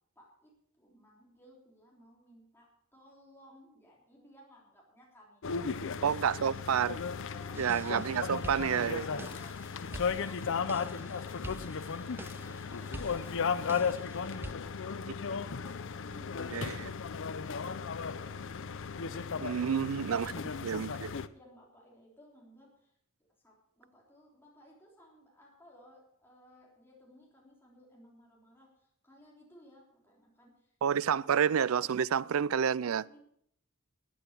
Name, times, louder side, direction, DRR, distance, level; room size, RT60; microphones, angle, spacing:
voice 1, 0.1-0.5 0.8-5.9 7.2-7.7 8.9-11.9 12.4-19.6 20.0-20.4 21.3-22.9 23.4-30.7 31.0-31.3 31.9-32.5 32.8-33.2, equal, 10° left, 3.4 m, -58 dB
sound 1, 5.4-21.3, left 5 dB, 65° left, 0.6 m, -36 dB
voice 2, 6.0-7.0 7.6-9.1 16.5-16.9 19.4-20.3 20.6-21.1 30.8-33.0, right 7 dB, 75° right, 0.4 m, -29 dB
sound 2, 7.5-14.5, right 1 dB, 10° right, 0.5 m, -47 dB
12.5 x 9.0 x 6.5 m
head